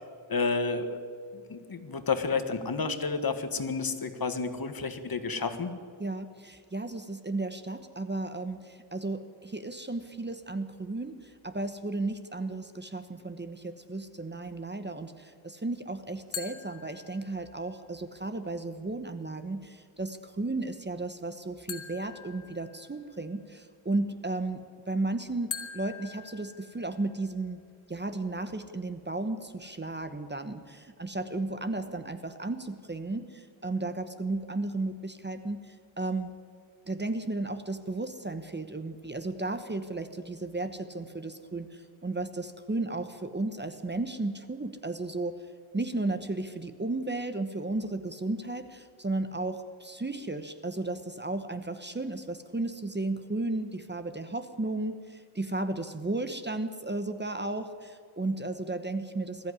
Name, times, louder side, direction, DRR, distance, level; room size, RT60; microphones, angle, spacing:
voice 1, 0.3-1.0 1.5-5.7, left 4 dB, 45° left, 9 dB, 1.6 m, -30 dB
voice 2, 6.0-27.6 27.9-36.3 36.9-45.4 45.7-59.5, right 2 dB, 20° right, 10 dB, 1.0 m, -34 dB
sound 1, 16.3-17.6 21.7-23.2 25.5-27.2, left 7 dB, 80° left, 2.5 m, -43 dB
20.5 x 14.0 x 9.8 m, 2.1 s
wide cardioid pair, 135°, 47 cm